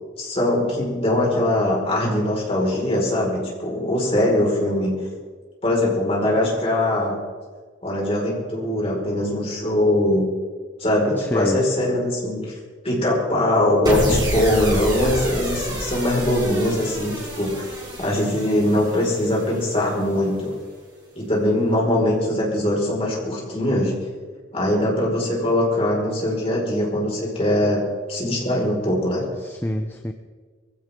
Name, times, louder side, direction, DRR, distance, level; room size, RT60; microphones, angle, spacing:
voice 1, 0.2-5.0 5.6-7.2 7.8-10.3 10.8-12.5 12.8-17.7 18.0-20.5 21.1-23.9 24.5-27.8 28.1-29.2, left 1 dB, 30° left, -3 dB, 5.2 m, -21 dB
voice 2, 11.2-11.7 29.4-30.1, left 1 dB, 10° left, 6 dB, 0.6 m, -26 dB
sound 1, 13.9-20.2, equal, 20° right, 5.6 m, -28 dB
22.5 x 16.0 x 3.8 m, 1.5 s
head